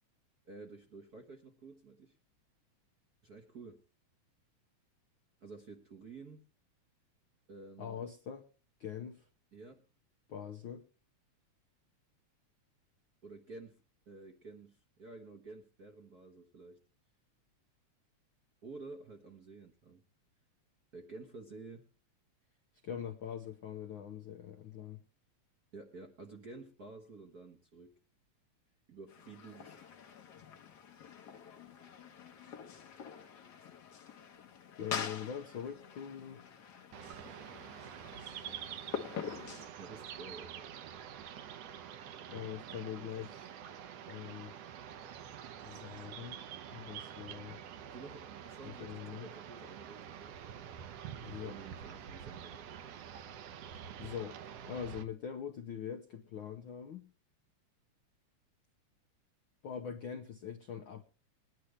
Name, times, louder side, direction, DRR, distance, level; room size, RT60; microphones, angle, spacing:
voice 1, 0.4-2.2 3.2-3.8 5.4-6.4 7.5-8.0 9.5-9.8 13.2-16.8 18.6-20.0 20.9-21.8 25.7-28.0 28.9-29.9 39.7-40.7 47.9-50.4 51.4-52.6, right 3 dB, 50° right, 3 dB, 1.2 m, -51 dB
voice 2, 7.8-8.4 8.8-9.3 10.3-10.8 22.8-25.0 34.8-36.4 42.3-43.6 44.1-44.6 45.7-46.4 46.7-47.6 48.6-49.3 51.2-51.6 54.0-54.4 54.6-57.1 59.6-61.0, left 8 dB, 75° left, 5 dB, 1.1 m, -43 dB
sound 1, 29.1-39.7, left 7 dB, 50° left, 1.3 m, -45 dB
sound 2, 36.9-55.0, right 9 dB, 70° right, 1.9 m, -47 dB
21.5 x 10.0 x 3.3 m, 0.34 s
omnidirectional pair, 3.3 m